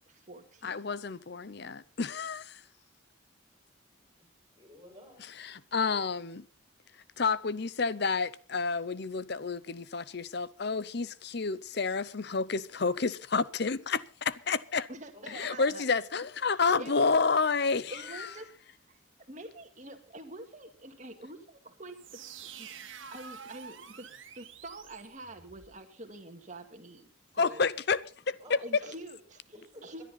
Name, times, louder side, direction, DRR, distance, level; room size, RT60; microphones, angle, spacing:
voice 1, 0.1-0.9 14.9-15.8 16.4-17.1 17.9-18.5 18.8-19.0 19.3-22.2 22.6-22.7 23.1-27.1 27.3-27.7 28.6-29.4 29.8-30.0, right 1 dB, 35° right, 2.0 m, -46 dB
voice 2, 0.6-2.6 5.4-6.4 7.2-14.9 15.3-17.9 27.4-28.0 28.3-28.6, left 4 dB, 55° left, 0.7 m, -30 dB
voice 3, 4.2-5.3 15.1-15.4 28.4-29.0 29.5-29.8, left 1 dB, 20° right, 6.1 m, -53 dB
sound 1, 21.9-25.7, right 7 dB, 70° right, 1.7 m, -48 dB
21.0 x 11.0 x 4.1 m
head